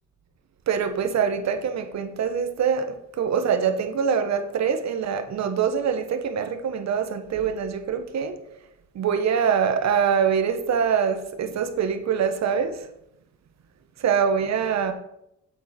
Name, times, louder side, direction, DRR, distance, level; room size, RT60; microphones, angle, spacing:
voice 1, 0.7-8.4 8.9-12.9 14.0-14.9, right 7 dB, 65° right, 8 dB, 1.2 m, -24 dB
8.0 x 7.4 x 4.3 m, 0.81 s
cardioid pair, 90°, 30 cm